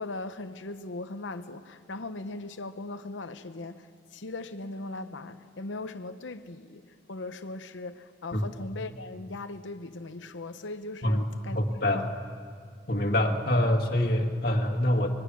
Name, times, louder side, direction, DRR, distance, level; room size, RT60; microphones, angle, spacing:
voice 1, 0.0-12.1, left 2 dB, 80° left, 0.8 m, -39 dB
voice 2, 11.5-12.0 12.9-15.1, left 1 dB, 55° left, 2.0 m, -25 dB
24.5 x 22.0 x 6.4 m
head